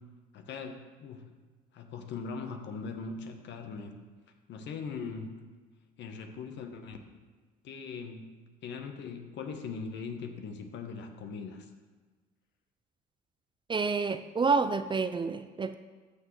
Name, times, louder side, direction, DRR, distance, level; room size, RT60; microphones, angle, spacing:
voice 1, 0.3-1.3 1.7-3.9 4.5-5.4 6.0-7.0 7.6-8.2 8.6-11.7, left 5 dB, 65° left, 5 dB, 1.1 m, -40 dB
voice 2, 13.7-15.8, right 4 dB, 25° right, 11 dB, 0.4 m, -28 dB
13.0 x 6.1 x 3.2 m, 1.3 s
supercardioid pair, 70°, 20 cm